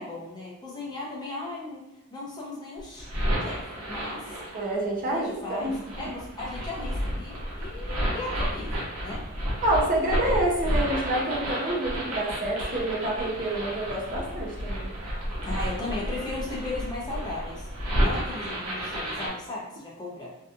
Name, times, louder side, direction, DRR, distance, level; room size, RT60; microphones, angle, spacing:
voice 1, 0.0-1.8 2.1-3.1 3.4-4.4 5.1-9.2 10.0-10.4 15.4-17.7 18.0-20.3, left 2 dB, 20° left, -5 dB, 0.6 m, -36 dB
sound 1, 2.8-4.8 5.5-19.3, equal, 70° right, 0.8 m, -31 dB
voice 2, 4.5-5.7 6.0-6.1 9.6-14.9, right 1 dB, 35° right, -2 dB, 0.6 m, -28 dB
2.7 x 2.3 x 2.4 m, 0.95 s
head